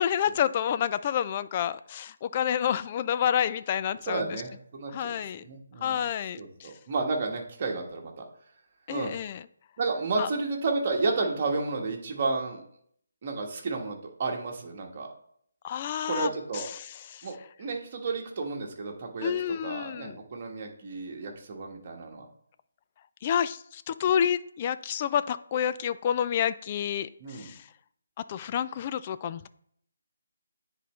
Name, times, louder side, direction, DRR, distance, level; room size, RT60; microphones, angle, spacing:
voice 1, 0.0-4.4 4.9-5.4 5.8-6.7 8.9-9.4 10.2-10.3 15.6-17.3 19.2-20.2 23.2-27.6 28.3-29.5, left 9 dB, 30° left, 14 dB, 0.3 m, -29 dB
voice 2, 4.1-6.0 6.4-8.2 8.9-9.1 9.8-12.6 13.2-15.1 16.0-16.7 17.2-22.2 27.2-27.5, right 3 dB, 40° right, 1 dB, 1.3 m, -32 dB
9.9 x 4.0 x 3.2 m, 0.67 s
figure-of-eight pair, 150°, 0 cm